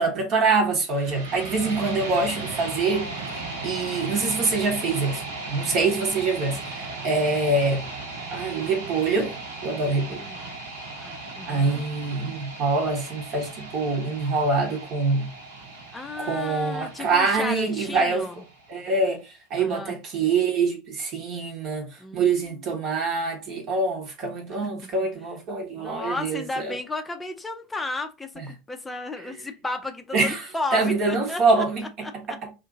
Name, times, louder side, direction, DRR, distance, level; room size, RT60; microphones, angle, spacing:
voice 1, 0.0-5.2 5.5-7.9 8.3-9.3 9.6-10.2 11.5-15.3 16.2-18.3 18.7-26.7 29.2-29.3 30.1-32.5, right 3 dB, 45° right, 1.0 m, -25 dB
sound 1, 0.9-18.9, right 3 dB, 70° right, 1.1 m, -37 dB
voice 2, 10.1-10.5 11.0-11.8 15.9-18.4 19.6-19.9 22.0-22.2 25.8-31.6 32.0-32.1, left 3 dB, 10° left, 0.5 m, -34 dB
2.7 x 2.5 x 3.8 m
figure-of-eight pair, 75°, 0 cm